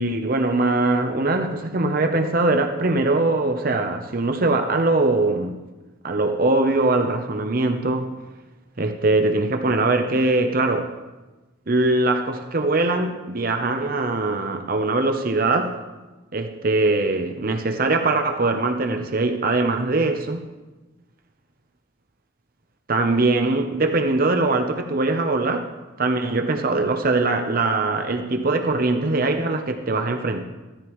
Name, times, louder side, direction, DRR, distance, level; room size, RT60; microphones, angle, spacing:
voice 1, 0.0-5.6 6.0-8.2 8.8-10.9 11.7-15.7 16.3-20.4 22.9-25.7 26.0-30.4, right 2 dB, 45° right, 4 dB, 0.8 m, -22 dB
16.5 x 13.0 x 3.1 m, 1.2 s
head